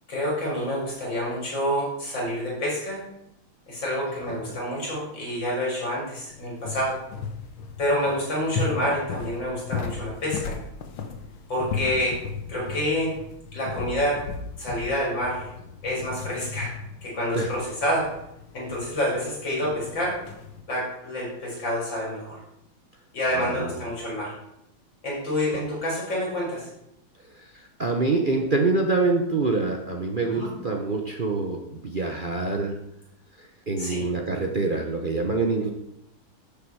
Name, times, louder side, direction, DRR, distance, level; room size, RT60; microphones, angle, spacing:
voice 1, 0.1-3.0 3.7-7.0 7.8-10.6 11.5-12.2 12.5-13.2 13.5-14.2 14.6-15.5 15.8-16.7 17.0-18.1 18.5-20.2 20.7-22.4 23.1-24.3 25.0-26.7 30.3-30.5 33.8-34.1, equal, 60° left, -4 dB, 5.4 m, -28 dB
sound 1, 6.3-20.6, left 5 dB, 85° left, 1.9 m, -36 dB
voice 2, 23.3-23.7 27.8-32.8 33.7-35.7, right 3 dB, 55° right, 2 dB, 0.5 m, -25 dB
11.5 x 7.1 x 4.7 m, 0.81 s
omnidirectional pair, 2.3 m